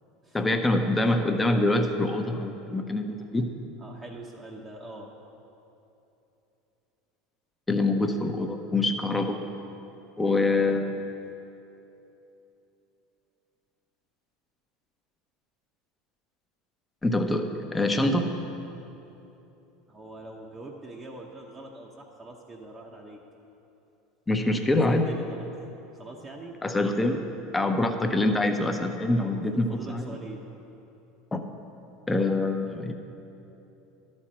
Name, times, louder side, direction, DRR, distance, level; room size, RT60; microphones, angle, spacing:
voice 1, 0.3-3.5 7.7-9.4 10.2-11.0 17.0-18.4 24.3-25.1 26.6-27.2 27.5-30.2 31.3-31.5 32.1-32.9, left 2 dB, 15° left, 5 dB, 0.8 m, -25 dB
voice 2, 3.8-5.1 19.9-23.2 24.5-24.6 24.9-25.5 25.9-26.6 29.2-30.5, right 2 dB, 25° right, -2 dB, 0.9 m, -43 dB
12.0 x 4.3 x 6.3 m, 2.9 s
hypercardioid pair, 80°, 0 cm